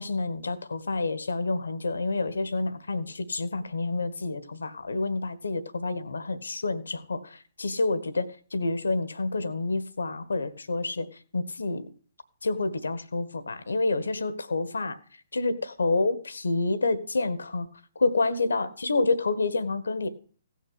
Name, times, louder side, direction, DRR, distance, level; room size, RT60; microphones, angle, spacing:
voice 1, 0.0-11.1 11.3-11.9 12.4-15.0 15.3-17.7 17.9-20.1, left 3 dB, 70° left, 14 dB, 1.5 m, -28 dB
16.5 x 6.5 x 8.2 m, 0.43 s
figure-of-eight pair, 125°, 0 cm